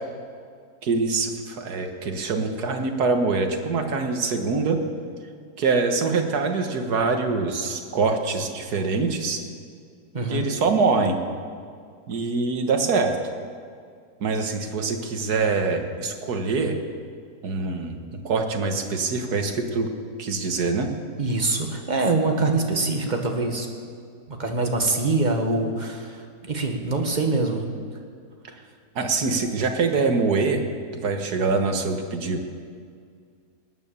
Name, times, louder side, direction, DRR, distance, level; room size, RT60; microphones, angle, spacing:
voice 1, 0.8-4.8 5.6-9.4 10.3-11.2 12.1-13.2 14.2-16.8 17.4-19.9 20.2-20.9 29.0-30.6 30.9-32.4, right 4 dB, 65° right, 5 dB, 1.8 m, -24 dB
voice 2, 10.1-10.5 21.2-23.7 24.3-27.6, right 3 dB, 25° right, 3 dB, 1.6 m, -24 dB
19.0 x 9.5 x 7.0 m, 2.2 s
omnidirectional pair, 1.8 m